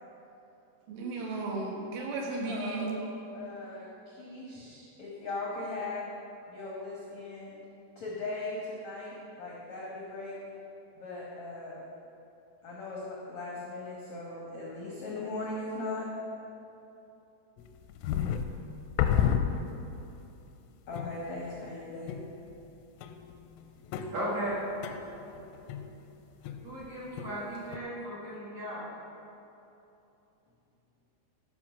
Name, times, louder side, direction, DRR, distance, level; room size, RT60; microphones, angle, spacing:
voice 1, 0.9-3.0, right 3 dB, 80° right, -1 dB, 3.8 m, -34 dB
voice 2, 2.4-6.1 6.5-7.6 8.0-10.4 11.0-11.9 12.6-16.1 20.9-22.1, left 2 dB, 75° left, -5 dB, 1.6 m, -39 dB
sound 1, 17.6-20.1 20.5-20.6 21.0-21.5 22.1-22.7 23.0-26.9 27.2-27.8, left 9 dB, 90° left, 3.1 m, -32 dB
voice 3, 24.1-24.6 26.6-28.8, right 1 dB, 55° right, -7 dB, 1.8 m, -36 dB
12.0 x 5.9 x 6.2 m, 2.9 s
omnidirectional pair, 5.6 m